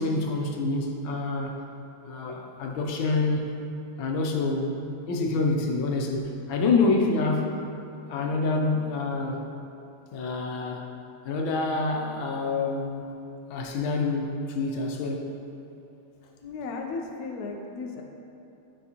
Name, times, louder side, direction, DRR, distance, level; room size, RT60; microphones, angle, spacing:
voice 1, 0.0-1.5 2.0-3.5 4.0-4.8 5.1-7.6 8.1-9.4 10.1-10.9 11.2-13.0 13.5-15.3, left 3 dB, 70° left, 1 dB, 1.4 m, -27 dB
voice 2, 16.4-18.0, left 4 dB, 85° left, 2 dB, 0.8 m, -35 dB
9.7 x 5.2 x 2.8 m, 2.8 s
omnidirectional pair, 2.4 m